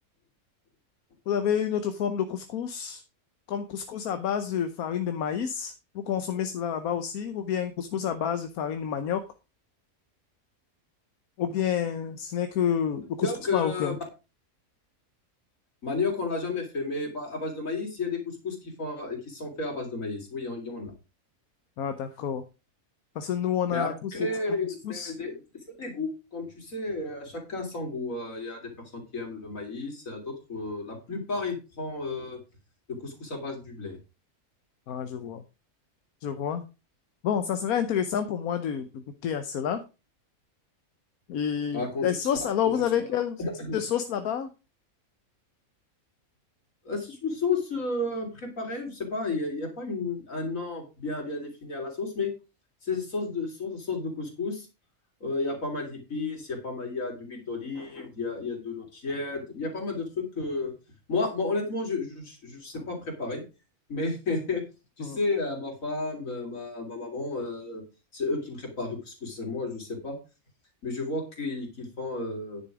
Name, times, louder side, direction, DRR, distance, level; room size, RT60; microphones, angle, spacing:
voice 1, 1.3-3.0 3.5-9.2 11.4-14.0 21.8-22.4 23.1-24.1 24.8-25.1 34.9-35.4 36.2-36.6 37.2-39.8 41.3-43.4 43.7-44.5 65.0-65.2, left 8 dB, 80° left, 9 dB, 1.3 m, -29 dB
voice 2, 13.2-13.9 15.8-20.9 23.7-25.4 25.8-32.4 32.9-34.0 41.7-42.1 42.4-43.1 43.4-43.8 46.9-52.3 52.8-54.7 55.2-60.7 61.1-63.4 63.9-64.6 65.0-67.8 68.1-70.2 70.8-72.6, left 3 dB, 65° left, 2 dB, 3.7 m, -32 dB
10.0 x 7.0 x 4.9 m, 0.30 s
omnidirectional pair, 1.5 m